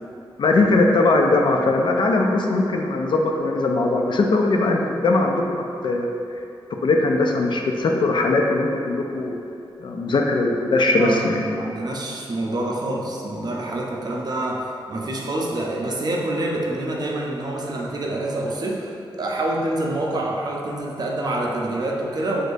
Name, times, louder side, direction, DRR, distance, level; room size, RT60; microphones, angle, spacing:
voice 1, 0.4-6.1 6.8-9.4 9.8-11.5, left 2 dB, 60° left, 1 dB, 0.4 m, -20 dB
voice 2, 11.6-22.4, right 1 dB, 50° right, -2 dB, 0.5 m, -26 dB
6.1 x 2.5 x 2.6 m, 2.6 s
wide cardioid pair, 115°, 9 cm